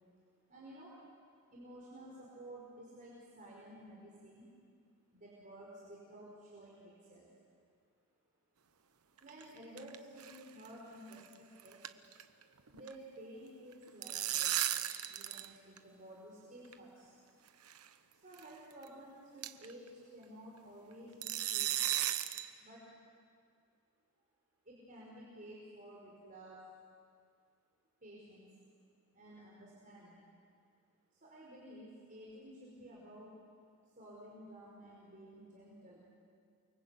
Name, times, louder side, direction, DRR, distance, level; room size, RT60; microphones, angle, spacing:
voice 1, 0.5-1.0 1.5-4.5 5.1-7.3 9.2-11.8 12.7-14.6 15.0-17.1 18.1-21.8 22.6-22.9 24.7-26.6 28.0-28.5 29.1-30.2 31.1-33.4 33.9-36.1, right 1 dB, 35° right, -5 dB, 5.2 m, -53 dB
sound 1, 9.2-10.0 10.2-10.4 10.7-10.8 11.1-11.3 11.6-12.4 12.7-12.9 13.7-15.5 15.8-15.9 16.7-16.8 17.7-17.9 18.3-18.4 18.8-18.9 19.4-19.7 21.2-22.5, right 12 dB, 80° right, 1.0 m, -35 dB
29.0 x 24.0 x 8.4 m, 2.2 s
head